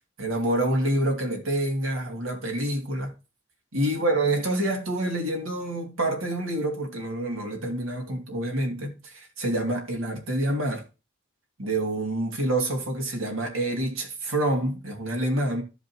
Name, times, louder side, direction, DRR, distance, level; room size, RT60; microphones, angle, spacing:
voice 1, 0.2-3.1 3.7-10.8 11.6-15.6, right 1 dB, 80° right, 2.4 m, -27 dB
14.5 x 5.1 x 2.9 m
head